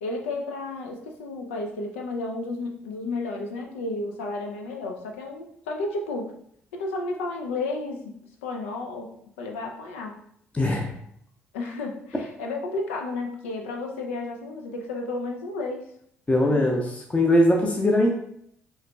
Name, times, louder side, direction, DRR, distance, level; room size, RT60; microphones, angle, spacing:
voice 1, 0.0-6.3 6.7-8.1 8.4-9.1 9.4-10.2 11.5-15.9 16.4-16.7, left 2 dB, 75° left, 2 dB, 0.5 m, -32 dB
voice 2, 10.5-10.9 16.3-18.2, left 1 dB, 20° left, 0 dB, 0.7 m, -21 dB
5.6 x 2.9 x 2.3 m, 0.70 s
figure-of-eight pair, 45°, 7 cm